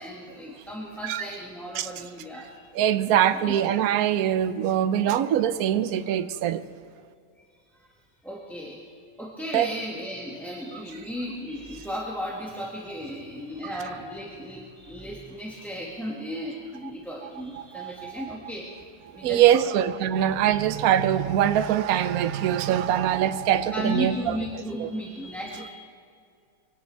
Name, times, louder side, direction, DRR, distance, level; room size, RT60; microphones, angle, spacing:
voice 1, 0.0-2.6 3.5-3.6 7.8-7.9 8.2-8.8 9.2-18.7 19.1-19.8 23.7-25.7, equal, ahead, -4 dB, 1.7 m, -35 dB
voice 2, 2.7-6.6 9.5-9.7 17.6-18.4 19.2-24.1 24.8-24.9, right 10 dB, 65° right, 11 dB, 1.1 m, -23 dB
23.5 x 18.0 x 3.4 m, 2.4 s
omnidirectional pair, 1.9 m